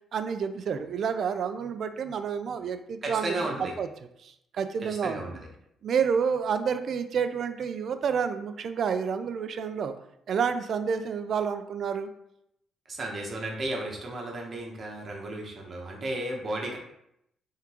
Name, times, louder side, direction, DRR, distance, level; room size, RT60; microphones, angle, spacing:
voice 1, 0.1-3.4 3.8-3.9 4.2-5.2 5.8-9.9 10.3-12.1, right 6 dB, 60° right, 9 dB, 0.4 m, -29 dB
voice 2, 3.0-3.7 4.8-5.5 12.9-16.8, right 1 dB, 45° right, 0 dB, 0.9 m, -34 dB
3.6 x 3.6 x 2.9 m, 0.77 s
cardioid pair, 90°, 0 cm